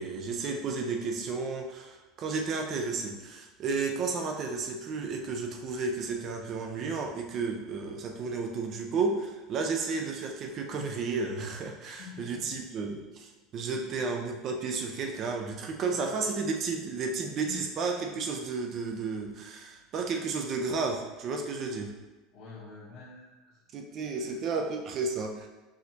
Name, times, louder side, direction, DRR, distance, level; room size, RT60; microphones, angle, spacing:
voice 1, 0.0-22.0 23.7-25.5, right 4 dB, 30° right, 3 dB, 0.5 m, -32 dB
voice 2, 12.0-12.6 15.9-16.1 17.4-17.7 19.9-20.0 22.3-23.6 23.9-24.5, left 5 dB, 45° left, -11 dB, 1.1 m, -47 dB
6.2 x 2.6 x 2.8 m, 1.2 s
cardioid pair, 170°, 0 cm